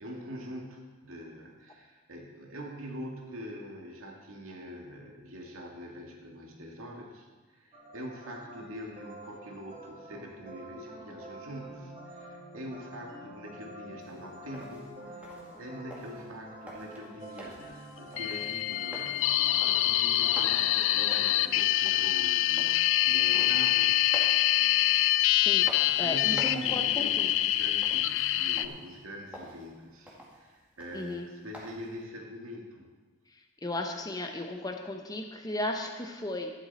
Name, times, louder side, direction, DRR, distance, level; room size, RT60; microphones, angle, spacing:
voice 1, 0.0-25.3 25.6-32.9, equal, 80° right, 0 dB, 2.2 m, -44 dB
sound 1, 7.7-21.6, equal, 25° right, 3.5 m, -47 dB
sound 2, 14.0-32.0, equal, 5° right, 2.1 m, -49 dB
sound 3, 18.2-28.7, left 14 dB, 65° left, 0.4 m, -25 dB
voice 2, 25.2-25.7 26.0-27.3 30.9-31.3 33.6-36.5, left 1 dB, 15° left, 3 dB, 0.9 m, -35 dB
12.5 x 11.5 x 4.3 m, 1.3 s
head